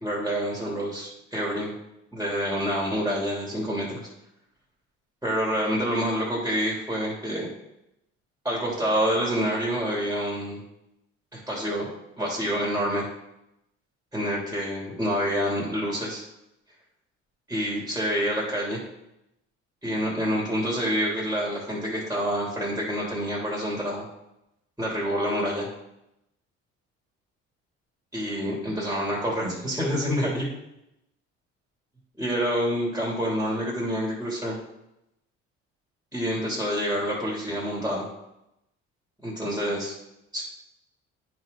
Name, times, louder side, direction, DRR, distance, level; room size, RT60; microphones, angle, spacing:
voice 1, 0.0-1.7 2.1-4.1 5.2-7.5 8.4-10.6 11.3-11.9 12.2-13.0 14.1-16.2 17.5-18.8 19.8-24.0 24.8-25.7 28.1-30.5 32.2-34.6 36.1-38.1 39.2-39.9 40.3-40.4, equal, 10° right, -4 dB, 3.0 m, -27 dB
10.0 x 4.7 x 4.0 m, 0.85 s
cardioid pair, 95°, 30 cm